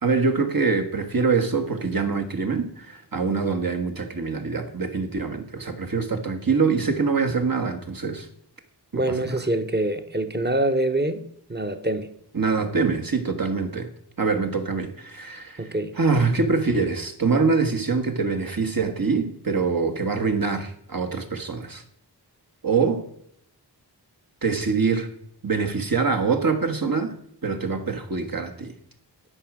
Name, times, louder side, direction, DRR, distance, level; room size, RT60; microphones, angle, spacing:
voice 1, 0.0-8.3 8.9-9.4 12.3-13.9 14.2-15.7 15.9-21.8 22.6-23.1 24.4-25.1 25.4-28.7, right 4 dB, 55° right, 1.5 m, -24 dB
voice 2, 8.9-12.1 15.6-15.9, right 1 dB, 25° right, 1.0 m, -25 dB
9.9 x 5.0 x 7.4 m
wide cardioid pair, 40°, 42 cm